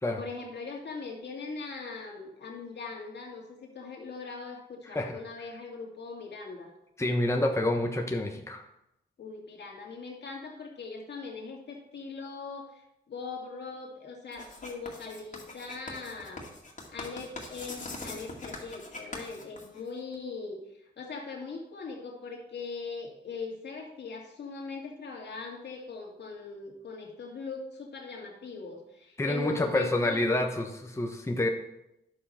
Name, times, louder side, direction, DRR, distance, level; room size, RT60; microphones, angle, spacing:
voice 1, 0.2-6.7 9.2-16.5 16.9-30.3, left 4 dB, 70° left, 0 dB, 2.2 m, -40 dB
voice 2, 7.0-8.6 29.2-31.5, left 1 dB, 15° left, 3 dB, 1.0 m, -28 dB
Writing, 14.3-20.1, left 2 dB, 40° left, 2.3 m, -42 dB
10.0 x 6.9 x 4.4 m, 0.86 s
cardioid pair, 70°, 19 cm